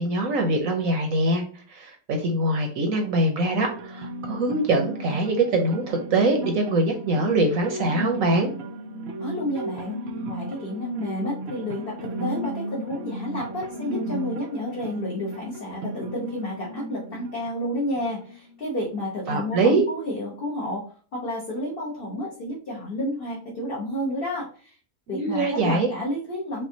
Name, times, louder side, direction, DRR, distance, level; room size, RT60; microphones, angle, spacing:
voice 1, 0.0-1.4 1.7-8.5 19.3-19.9 25.1-25.9, right 2 dB, 65° right, 2 dB, 1.0 m, -23 dB
sound 1, 3.6-18.6, right 1 dB, 80° right, 0.5 m, -35 dB
voice 2, 9.2-10.0 10.2-20.9 21.1-24.8 25.1-26.6, left 1 dB, 40° left, -5 dB, 1.1 m, -31 dB
5.5 x 2.5 x 2.7 m, 0.43 s
omnidirectional pair, 1.7 m